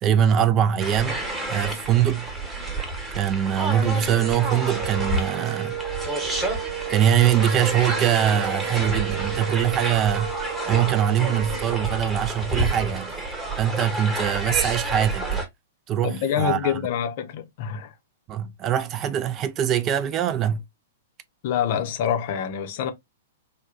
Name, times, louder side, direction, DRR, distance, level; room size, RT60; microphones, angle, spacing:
voice 1, 0.0-1.2 1.5-2.3 3.1-5.8 6.9-10.3 10.7-13.1 13.6-15.4 15.9-16.8 18.3-20.6, right 10 dB, 30° right, 0.3 m, -22 dB
sound 1, 0.8-15.5, right 2 dB, 15° right, 1.0 m, -29 dB
sound 2, 4.0-12.2, right 12 dB, 65° right, 0.8 m, -34 dB
voice 2, 16.0-17.9 21.4-22.9, left 9 dB, 50° left, 0.6 m, -26 dB
3.6 x 2.2 x 2.3 m
figure-of-eight pair, 105°, 0 cm